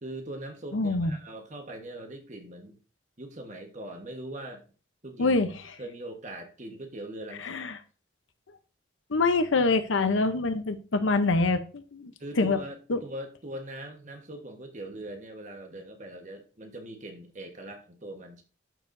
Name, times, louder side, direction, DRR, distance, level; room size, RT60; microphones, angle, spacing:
voice 1, 0.0-2.8 3.2-4.7 5.0-5.3 5.8-7.6 12.2-18.4, right 1 dB, 40° right, 4 dB, 1.2 m, -41 dB
voice 2, 0.7-1.1 5.2-5.5 7.4-7.8 9.1-12.6 12.9-13.0, left 3 dB, 85° left, 10 dB, 0.7 m, -25 dB
12.0 x 4.6 x 2.6 m, 0.36 s
head